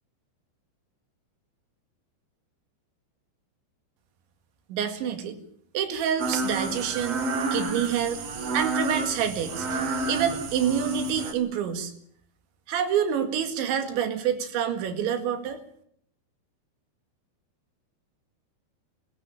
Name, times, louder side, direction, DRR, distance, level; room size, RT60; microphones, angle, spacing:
voice 1, 4.7-5.4 5.7-7.3 7.5-8.2 8.5-9.7 10.1-11.9 12.7-15.6, right 8 dB, 80° right, 8 dB, 4.4 m, -27 dB
sound 1, 6.2-11.3, right 2 dB, 55° right, 1.9 m, -30 dB
22.5 x 15.0 x 8.8 m, 0.67 s
omnidirectional pair, 5.2 m